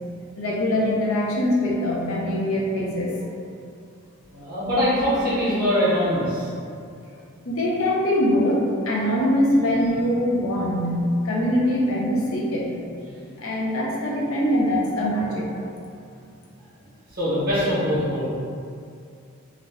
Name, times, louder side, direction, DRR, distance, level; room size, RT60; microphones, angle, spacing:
voice 1, 0.4-3.1 7.4-11.0 11.2-12.7 13.4-15.5, left 1 dB, 75° left, -4 dB, 0.6 m, -23 dB
voice 2, 4.3-6.5 17.1-18.2, equal, 40° right, -9 dB, 0.7 m, -22 dB
2.4 x 2.1 x 3.3 m, 2.4 s
head